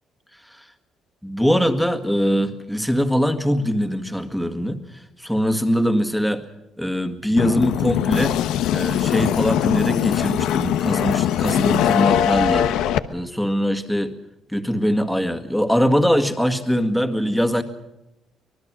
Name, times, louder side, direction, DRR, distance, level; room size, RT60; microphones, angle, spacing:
voice 1, 1.2-6.4 6.8-8.4 8.7-12.7 13.1-14.1 14.5-17.6, equal, ahead, 6 dB, 2.0 m, -22 dB
sound 1, 7.4-13.0, left 10 dB, 85° left, 1.0 m, -21 dB
25.0 x 19.5 x 6.2 m, 0.89 s
cardioid pair, 115°, 0 cm